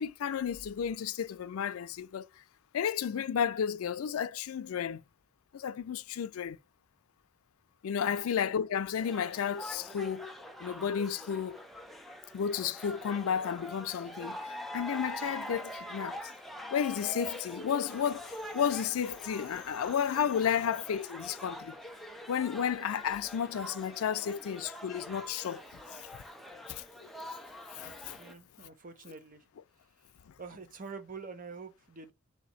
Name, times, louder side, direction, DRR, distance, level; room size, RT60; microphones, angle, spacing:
voice 1, 0.0-2.3 2.7-5.0 5.5-6.6 7.8-10.3 10.6-11.6 12.3-16.2 16.7-21.8 22.3-26.1 26.7-26.8 27.7-28.2, left 8 dB, 85° left, 0.4 m, -32 dB
sound 1, 9.0-28.3, equal, ahead, 0.5 m, -44 dB
voice 2, 28.2-29.5 30.0-30.1 30.4-32.1, right 4 dB, 40° right, 0.7 m, -46 dB
3.3 x 2.9 x 4.1 m
head